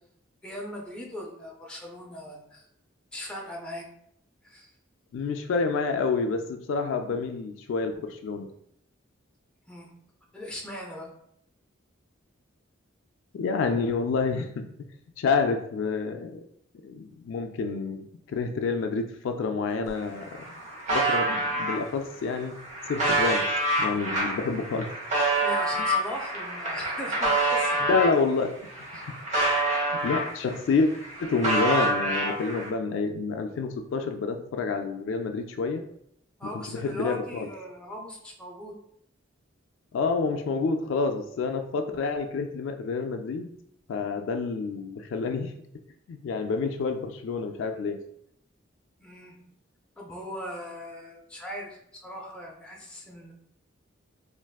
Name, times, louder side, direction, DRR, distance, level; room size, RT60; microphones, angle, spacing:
voice 1, 0.4-2.6 3.1-3.8 4.4-4.7 9.7-9.9 10.3-11.1 25.4-27.9 28.9-29.1 36.4-38.7 49.0-49.5 50.0-53.3, equal, 5° left, -2 dB, 0.5 m, -39 dB
voice 2, 5.1-8.5 13.3-14.7 15.2-16.4 16.8-20.4 20.9-22.5 22.9-23.5 23.8-24.9 25.8-25.9 27.9-28.6 29.9-30.9 31.2-35.8 36.7-37.5 39.9-43.5 43.9-45.5 46.1-48.0, left 4 dB, 70° left, 6 dB, 0.3 m, -28 dB
sound 1, 19.9-20.0 20.2-21.8 22.4-28.2 28.6-30.6 30.9-32.7, right 2 dB, 35° right, 0.8 m, -27 dB
3.4 x 2.5 x 2.3 m, 0.72 s
head